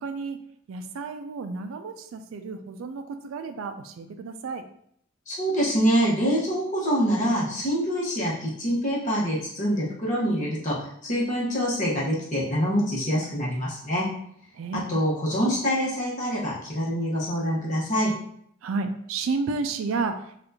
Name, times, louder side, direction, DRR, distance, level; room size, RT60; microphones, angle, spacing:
voice 1, 0.0-0.4 0.7-4.6 14.5-14.8 18.6-20.4, right 4 dB, 65° right, 8 dB, 0.3 m, -31 dB
voice 2, 5.3-14.0 14.9-18.1, equal, 35° left, -6 dB, 1.0 m, -25 dB
4.3 x 2.4 x 2.7 m, 0.68 s
head